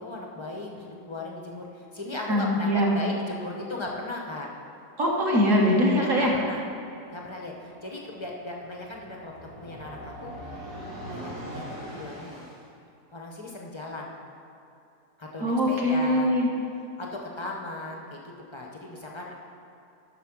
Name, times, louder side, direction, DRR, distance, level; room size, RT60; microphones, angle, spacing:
voice 1, 0.0-4.5 6.0-6.6 7.1-9.3 9.6-10.3 11.1-12.5 13.1-14.1 15.2-16.3 17.0-18.2 18.5-19.3, left 2 dB, 40° left, -1 dB, 0.4 m, -37 dB
voice 2, 2.3-2.9 5.0-6.3 15.4-16.5, equal, 50° right, -2 dB, 1.7 m, -22 dB
sound 1, 7.3-12.6, right 1 dB, 65° right, 2.4 m, -42 dB
8.2 x 6.0 x 6.0 m, 2.7 s
omnidirectional pair, 1.8 m